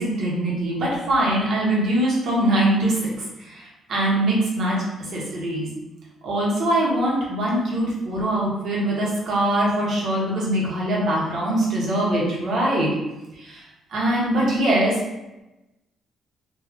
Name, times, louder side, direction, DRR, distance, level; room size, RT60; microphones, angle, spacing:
voice 1, 0.0-3.1 3.4-4.8 5.1-5.7 6.2-12.9 13.4-13.6 13.9-15.0, right 1 dB, 60° right, -5 dB, 1.3 m, -22 dB
4.7 x 2.7 x 2.9 m, 1.0 s
cardioid pair, 135°, 0 cm